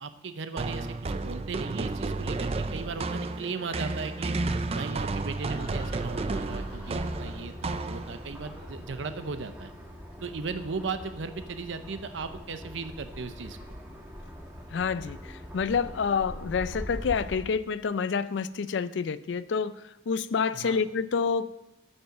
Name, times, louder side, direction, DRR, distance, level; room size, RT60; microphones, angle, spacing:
voice 1, 0.0-4.3 4.7-9.7 10.2-13.6 20.5-20.8, right 4 dB, 80° right, 10 dB, 0.7 m, -37 dB
sound 1, 0.6-8.4, right 3 dB, 35° right, 0.4 m, -32 dB
Laughter, 2.9-9.4, left 1 dB, 10° left, 3.6 m, -50 dB
sound 2, 5.6-17.4, equal, 10° right, 1.5 m, -42 dB
voice 2, 14.7-19.7 20.1-21.5, left 5 dB, 70° left, 15 dB, 0.4 m, -28 dB
8.8 x 5.4 x 6.6 m, 0.95 s
head